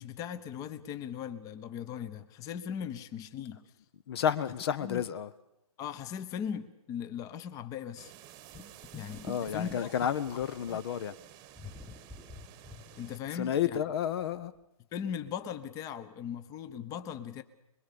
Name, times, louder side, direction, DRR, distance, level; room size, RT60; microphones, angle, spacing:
voice 1, 0.0-3.6 4.8-5.0 5.8-8.1 8.9-10.1 10.7-10.8 13.0-13.8 14.9-17.4, left 8 dB, 20° left, 1.0 m, -39 dB
voice 2, 4.1-5.3 9.2-11.1 13.3-14.5, left 9 dB, 45° left, 1.0 m, -31 dB
sound 1, 7.9-13.2, right 12 dB, 20° right, 1.3 m, -53 dB
sound 2, 8.5-10.8 11.6-13.5 13.9-14.0 14.3-14.4, left 3 dB, ahead, 1.1 m, -47 dB
25.0 x 22.0 x 7.0 m
hypercardioid pair, 145°, 18 cm